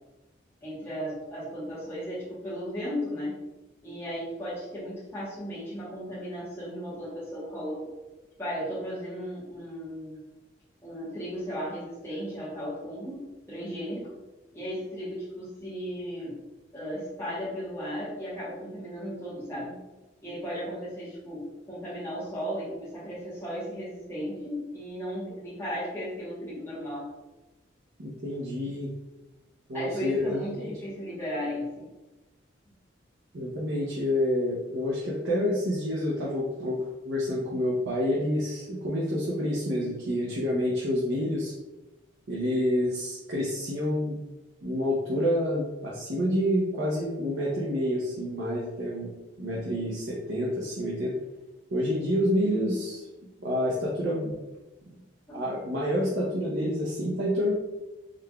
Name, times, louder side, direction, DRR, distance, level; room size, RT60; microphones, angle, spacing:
voice 1, 0.6-3.4 3.8-7.9 8.4-10.2 10.8-14.1 14.5-16.4 16.7-19.7 20.2-27.1 29.7-31.9 55.3-55.4, equal, 15° left, -10 dB, 1.1 m, -35 dB
voice 2, 28.0-28.9 29.7-30.7 33.3-36.8 37.0-41.5 42.3-44.2 44.6-49.1 49.4-51.1 51.7-53.1 53.4-54.3 55.3-57.5, equal, 80° right, -5 dB, 0.7 m, -28 dB
3.8 x 3.3 x 2.2 m, 1.1 s
head